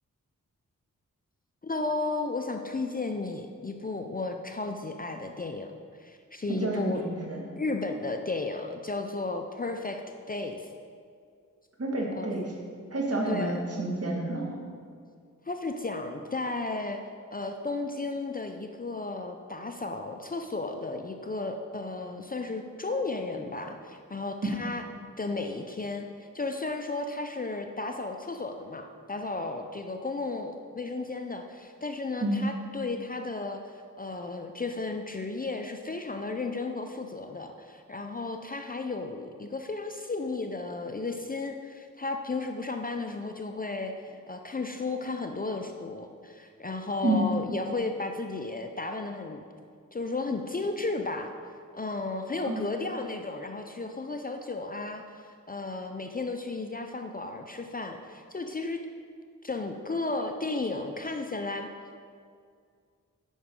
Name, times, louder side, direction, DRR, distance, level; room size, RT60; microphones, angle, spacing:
voice 1, 1.6-5.7 6.0-7.1 7.6-10.0 10.3-10.7 12.1-12.3 13.3-13.6 15.5-17.0 17.3-24.8 25.2-33.6 34.0-49.4 49.9-51.3 51.7-58.8 59.4-61.7, left 3 dB, 25° left, 5 dB, 0.5 m, -34 dB
voice 2, 6.5-7.4 11.8-12.5 12.9-14.5 32.2-32.5 47.0-47.3 52.5-52.6, right 1 dB, 45° right, -1 dB, 1.8 m, -29 dB
9.3 x 5.9 x 3.7 m, 2.2 s
cardioid pair, 45°, 33 cm